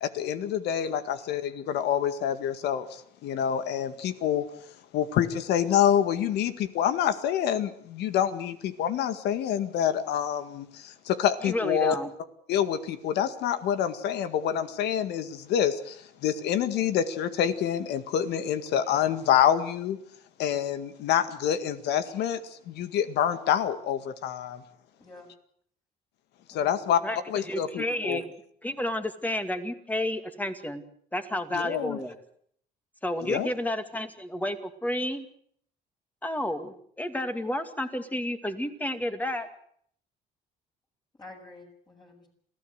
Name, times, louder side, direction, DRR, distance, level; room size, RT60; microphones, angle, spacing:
voice 1, 0.0-4.4 4.9-12.0 12.5-20.0 20.4-24.6 26.5-27.0 27.3-28.2 31.5-32.0 33.2-33.5, left 9 dB, 80° left, 11 dB, 1.9 m, -27 dB
voice 2, 11.4-12.1 27.0-27.2 27.5-28.3 28.6-30.8 31.1-32.1 33.0-35.3 36.2-39.5, left 1 dB, 10° left, 8 dB, 2.4 m, -31 dB
voice 3, 26.5-27.2 41.2-42.3, left 2 dB, 25° left, 0 dB, 6.9 m, -49 dB
27.0 x 15.5 x 8.1 m, 0.66 s
cardioid pair, 110°, 17 cm